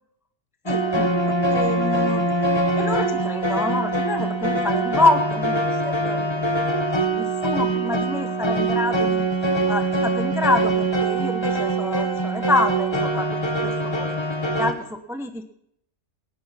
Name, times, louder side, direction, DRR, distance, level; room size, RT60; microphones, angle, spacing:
sound 1, 0.7-14.7, right 2 dB, 20° left, 1.5 m, -23 dB
voice 1, 0.7-1.2 1.5-2.4 2.8-6.8 7.1-15.4, left 2 dB, ahead, 7 dB, 0.8 m, -27 dB
17.5 x 10.0 x 5.8 m, 0.74 s
omnidirectional pair, 1.4 m